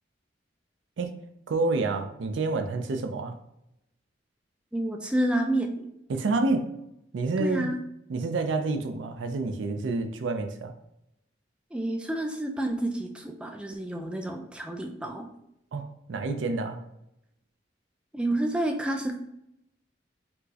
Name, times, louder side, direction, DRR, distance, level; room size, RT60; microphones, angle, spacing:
voice 1, 1.5-3.4 6.1-6.7 7.1-7.7 8.1-10.7 15.7-16.8, right 3 dB, 90° right, 6 dB, 0.4 m, -28 dB
voice 2, 4.7-5.9 7.4-7.8 11.7-15.3 18.1-19.1, right 1 dB, 5° right, 3 dB, 0.3 m, -29 dB
4.4 x 2.0 x 2.7 m, 0.80 s
head